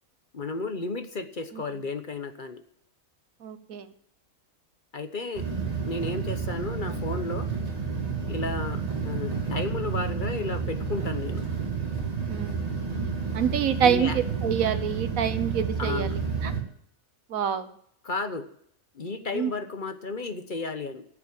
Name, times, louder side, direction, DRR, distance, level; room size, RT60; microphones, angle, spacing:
voice 1, 0.3-2.6 4.9-5.4 5.8-7.5 8.3-11.4 13.8-14.2 15.8-16.2 18.0-18.5 18.9-21.1, left 3 dB, 40° left, 8 dB, 1.1 m, -33 dB
voice 2, 3.4-3.9 12.3-12.6 13.3-16.5 17.3-17.7 19.3-19.5, right 8 dB, 85° right, 11 dB, 1.5 m, -26 dB
sound 1, 5.4-16.6, right 5 dB, 30° right, 2.4 m, -30 dB
13.0 x 7.5 x 8.8 m, 0.67 s
omnidirectional pair, 1.4 m